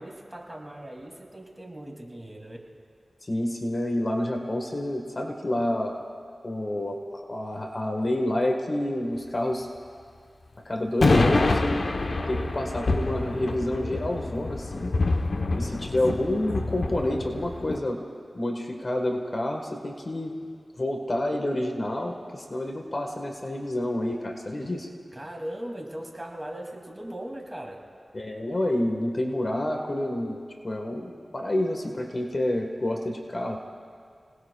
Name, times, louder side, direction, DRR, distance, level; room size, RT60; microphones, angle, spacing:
voice 1, 0.0-2.6 15.5-16.0 25.1-27.8, right 1 dB, 20° right, 0 dB, 2.6 m, -39 dB
voice 2, 3.2-6.0 6.4-9.7 10.6-11.9 12.3-14.9 15.5-18.0 18.3-20.4 20.8-24.9 28.1-33.6, left 1 dB, 45° left, 2 dB, 1.4 m, -28 dB
sound 1, 11.0-17.8, left 3 dB, 65° left, 0.9 m, -26 dB
30.0 x 19.0 x 2.3 m, 2.2 s
wide cardioid pair, 65°, 0 cm